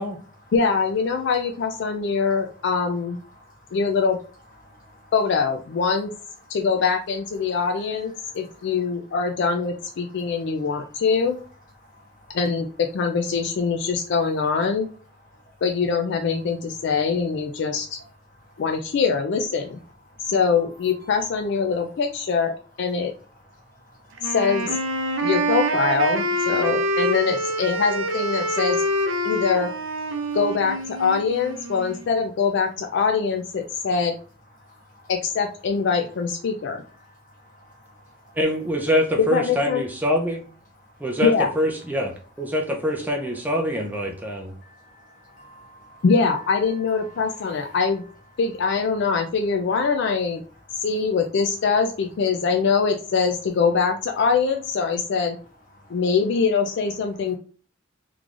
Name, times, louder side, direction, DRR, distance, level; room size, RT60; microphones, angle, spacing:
voice 1, 0.5-3.2 3.7-4.2 5.1-6.1 6.5-11.4 12.3-12.7 12.9-14.9 15.6-18.0 18.6-19.8 20.2-23.1 24.3-24.7 25.2-28.8 29.2-29.7 30.3-34.2 35.1-36.8 39.2-39.8 41.2-41.5 46.0-48.0 48.4-50.4 50.8-55.4 55.9-57.4, left 5 dB, 60° left, 5 dB, 0.4 m, -23 dB
voice 2, 1.8-2.4 3.3-3.8 4.6-5.1 6.4-6.6 7.4-7.6 8.2-8.9 10.0-11.0 11.8-12.4 13.9-14.0 15.2-15.6 18.0-18.1 18.4-18.6 20.1-20.4 21.0-21.1 23.4-24.4 25.0-25.3 26.9-27.0 28.5-28.6 29.2-29.3 30.1-30.4 34.6-35.1 36.8-38.4 40.7-41.2 42.4-42.5 43.9-46.0 47.0-47.8 50.7-50.9 55.7-56.0, equal, 45° left, 1 dB, 1.2 m, -52 dB
Wind instrument woodwind instrument, 24.2-32.1, right 1 dB, 75° right, 0.6 m, -26 dB
voice 3, 38.4-40.4 41.0-44.5, equal, 10° right, 1 dB, 0.5 m, -24 dB
3.7 x 3.1 x 2.4 m, 0.40 s
head